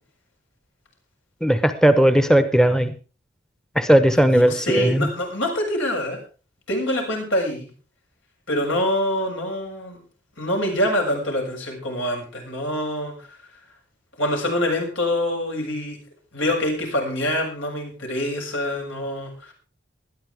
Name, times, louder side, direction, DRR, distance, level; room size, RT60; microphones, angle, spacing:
voice 1, 1.4-2.9 3.8-5.1, right 1 dB, 5° left, 9 dB, 0.9 m, -17 dB
voice 2, 4.1-6.2 6.7-7.7 8.5-10.0 10.4-13.4 14.2-16.0 16.3-19.5, left 1 dB, 85° left, 2 dB, 7.0 m, -25 dB
20.0 x 13.0 x 3.5 m, 0.36 s
head